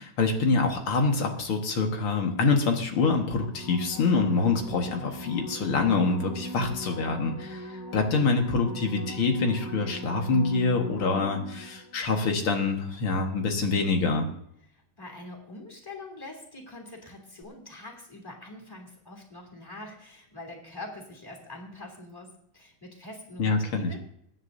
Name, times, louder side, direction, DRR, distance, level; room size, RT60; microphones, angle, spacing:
voice 1, 0.0-14.3 23.4-23.9, left 4 dB, 85° left, 3 dB, 2.5 m, -26 dB
sound 1, 3.5-12.1 17.4-17.5, equal, 10° right, 1.5 m, -40 dB
voice 2, 14.7-24.0, left 2 dB, 10° left, 1 dB, 3.1 m, -44 dB
23.0 x 10.0 x 2.7 m, 0.71 s
omnidirectional pair, 2.3 m